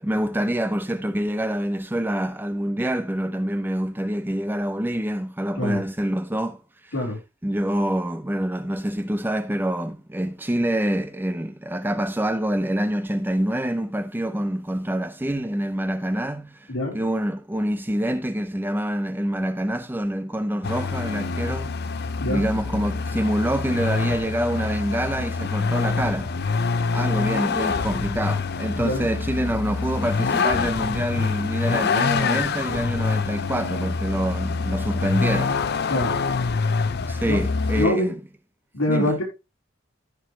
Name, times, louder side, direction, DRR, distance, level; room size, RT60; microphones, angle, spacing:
voice 1, 0.0-6.9 7.4-21.8 22.3-26.4 26.9-35.6 37.1-38.2 38.9-39.2, right 1 dB, 10° right, 0.5 m, -26 dB
Vehicle, 20.6-37.9, left 4 dB, 50° left, 0.5 m, -25 dB
voice 2, 28.7-29.1 35.9-36.1 37.3-37.4 37.8-38.1 38.7-39.2, left 1 dB, 80° left, 4.0 m, -24 dB
14.5 x 4.8 x 3.2 m
head